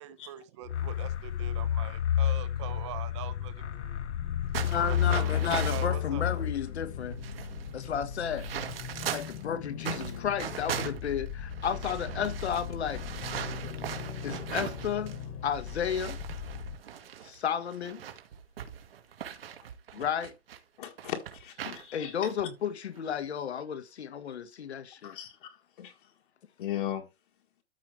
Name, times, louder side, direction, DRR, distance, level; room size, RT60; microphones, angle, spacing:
voice 1, 0.0-4.3 4.8-6.2, right 12 dB, 25° right, 0.9 m, -43 dB
sound 1, 0.7-7.2, left 10 dB, 90° left, 0.8 m, -30 dB
sound 2, 3.0-16.8, left 7 dB, 30° left, 1.5 m, -40 dB
sound 3, 4.5-6.0 6.7-6.8 7.0-9.4 9.8-15.2 15.5-20.6 21.0-21.8 22.3-22.4 23.0-23.2, right 9 dB, 60° right, 2.0 m, -39 dB
voice 2, 4.6-7.2 7.7-8.5 9.1-13.0 14.2-16.2 17.2-18.0 19.9-20.3 21.9-25.2, left 8 dB, 75° left, 1.6 m, -33 dB
voice 3, 20.8-22.1 25.0-25.3 25.8-25.9 26.6-27.0, left 11 dB, 50° left, 1.6 m, -36 dB
13.5 x 5.1 x 3.4 m
hypercardioid pair, 165°, 33 cm